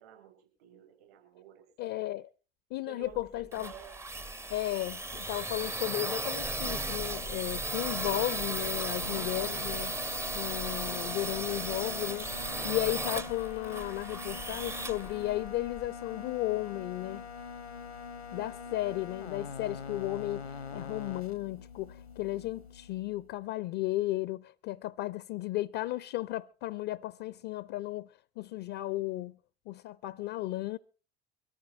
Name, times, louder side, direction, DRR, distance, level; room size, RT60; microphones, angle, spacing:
voice 1, 0.0-2.0 2.9-4.4 18.7-18.8, right 11 dB, 70° right, 5.8 m, -53 dB
voice 2, 1.8-2.3 2.7-3.7 4.5-10.0 10.3-17.3 18.3-29.4 29.7-30.8, left 16 dB, 50° left, 0.6 m, -34 dB
sound 1, 3.1-15.9, right 2 dB, 10° right, 0.6 m, -36 dB
sound 2, 6.1-23.3, left 5 dB, 90° left, 1.3 m, -45 dB
24.0 x 14.5 x 2.9 m
figure-of-eight pair, 65°, 31 cm